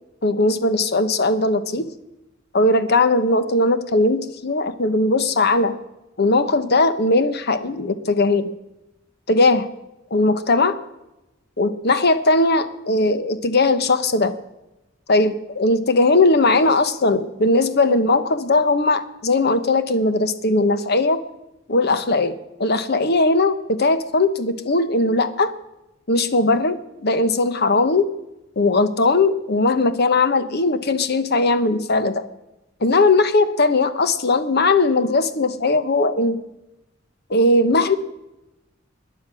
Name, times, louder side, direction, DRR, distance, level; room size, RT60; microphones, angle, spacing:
voice 1, 0.2-1.9 2.5-5.7 6.2-8.5 9.3-9.7 10.1-10.8 11.6-14.3 15.1-21.2 21.7-22.3 22.6-25.5 26.1-28.1 28.6-32.2 32.8-36.4 37.3-38.0, left 2 dB, 55° left, 11 dB, 1.0 m, -19 dB
17.5 x 10.5 x 6.2 m, 0.94 s
head